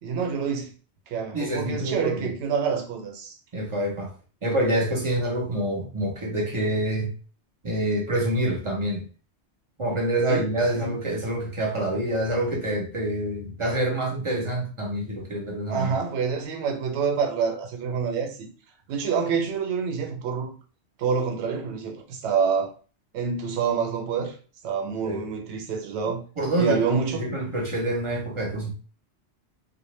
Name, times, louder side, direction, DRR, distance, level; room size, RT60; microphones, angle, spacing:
voice 1, 0.0-0.7 1.1-3.4 10.3-10.5 10.7-10.9 15.7-18.5 18.9-20.5 21.0-22.7 23.1-24.4 24.6-26.2 26.6-27.3, right 6 dB, 80° right, 0.9 m, -27 dB
voice 2, 1.3-2.3 3.5-4.1 4.4-7.1 7.6-9.0 9.8-16.0 24.9-25.3 26.4-28.7, right 1 dB, 40° right, 0.5 m, -27 dB
2.1 x 2.1 x 3.1 m
omnidirectional pair, 1.2 m